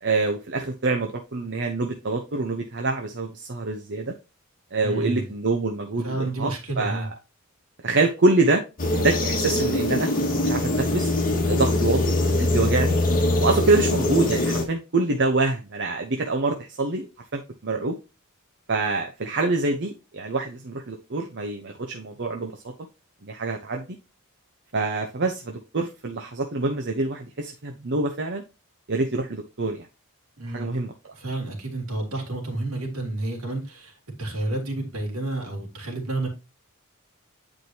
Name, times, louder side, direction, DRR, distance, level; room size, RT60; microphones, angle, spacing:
voice 1, 0.0-4.1 4.7-7.1 7.8-8.6 8.9-10.1 10.4-11.1 11.5-12.0 12.4-13.0 13.4-17.1 17.3-18.0 18.7-22.6 23.2-23.9 24.7-28.4 28.9-29.8 30.5-30.9, right 3 dB, 55° right, 3 dB, 1.0 m, -25 dB
voice 2, 4.8-5.3 6.0-7.1 30.4-30.7 31.1-36.3, right 2 dB, 70° right, 2 dB, 3.1 m, -30 dB
sound 1, 8.8-14.6, left 2 dB, 40° left, 1.8 m, -23 dB
9.5 x 5.0 x 2.9 m, 0.29 s
head